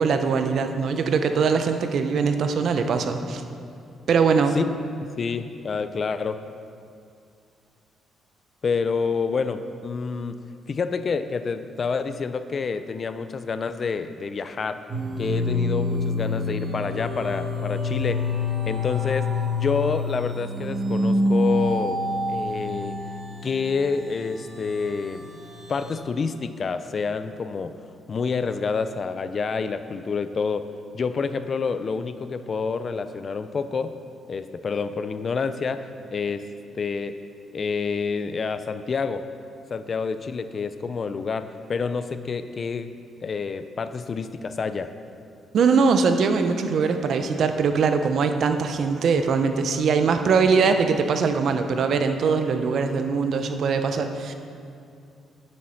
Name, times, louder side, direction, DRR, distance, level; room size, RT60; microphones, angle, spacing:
voice 1, 0.0-3.4 4.1-4.6 45.5-54.3, right 5 dB, 60° right, 7 dB, 0.8 m, -22 dB
voice 2, 5.0-6.4 8.6-10.4 10.7-14.8 15.2-18.2 18.7-19.3 19.6-22.0 22.3-23.0 23.4-25.3 25.7-27.7 28.1-30.6 30.9-33.9 34.3-36.4 36.7-37.1 37.5-39.2 39.7-42.9 43.2-44.9, left 5 dB, 45° left, 11 dB, 0.5 m, -28 dB
sound 1, 14.9-26.0, left 2 dB, 40° right, 2.3 m, -27 dB
10.5 x 7.8 x 5.8 m, 2.4 s
cardioid pair, 90°, 0 cm